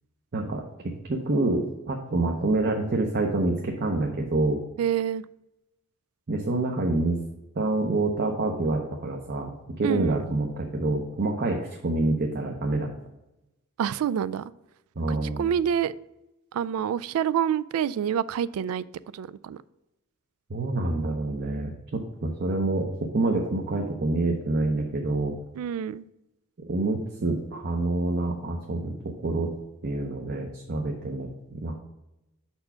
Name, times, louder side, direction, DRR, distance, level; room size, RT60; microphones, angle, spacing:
voice 1, 0.3-4.6 6.3-7.2 7.6-9.5 9.8-12.9 15.0-15.5 20.5-25.4 26.6-29.5 29.8-31.8, right 2 dB, 50° right, 2 dB, 0.7 m, -27 dB
voice 2, 4.8-5.2 9.8-10.2 13.8-14.5 15.1-15.9 16.5-18.9 19.1-19.6 25.6-26.1, right 9 dB, 90° right, 17 dB, 0.3 m, -27 dB
5.7 x 4.4 x 5.6 m, 0.94 s
head